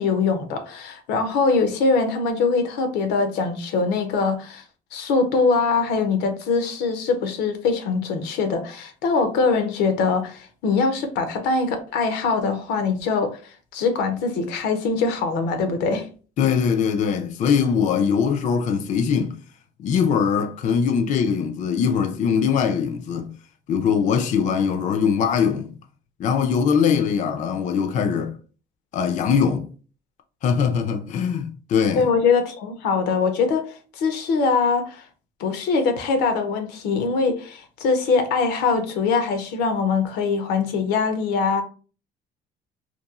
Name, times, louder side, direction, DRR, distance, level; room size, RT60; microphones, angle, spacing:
voice 1, 0.0-4.6 4.9-16.1 32.0-35.0 35.4-41.6, left 4 dB, 90° left, 0.6 m, -22 dB
voice 2, 16.4-19.4 19.8-23.3 23.7-25.7 26.2-28.3 28.9-29.7 30.4-32.1, left 6 dB, 45° left, 0.4 m, -21 dB
2.9 x 2.2 x 2.3 m
cardioid pair, 110°, 17 cm